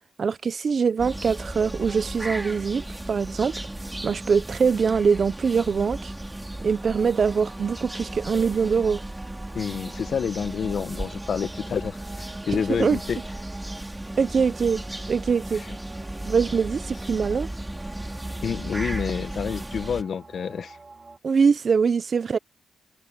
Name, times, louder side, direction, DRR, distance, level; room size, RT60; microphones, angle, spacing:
voice 1, 0.2-3.5 4.0-6.1 6.6-9.0 12.8-13.0 14.2-14.8 15.1-15.6 16.2-17.5 21.2-22.4, right 5 dB, 50° right, 0.7 m, -23 dB
sound 1, 1.0-20.0, right 1 dB, 10° right, 2.9 m, -35 dB
sound 2, 6.6-21.2, right 3 dB, 35° right, 2.6 m, -47 dB
voice 2, 9.5-13.2 15.5-15.8 18.4-20.8, left 7 dB, 65° left, 1.4 m, -29 dB
cardioid pair, 80°, 0 cm